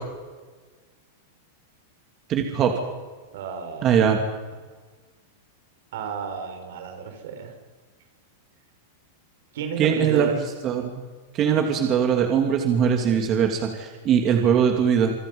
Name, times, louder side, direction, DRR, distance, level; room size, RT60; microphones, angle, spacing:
voice 1, 2.3-2.7 3.8-4.2 9.8-10.3 10.6-10.9 11.3-15.1, right 8 dB, 30° right, 3 dB, 2.9 m, -21 dB
voice 2, 3.3-4.1 5.9-7.5 9.5-10.3, right 7 dB, 70° right, 5 dB, 5.7 m, -32 dB
28.0 x 24.5 x 5.6 m, 1.4 s
supercardioid pair, 145°, 0 cm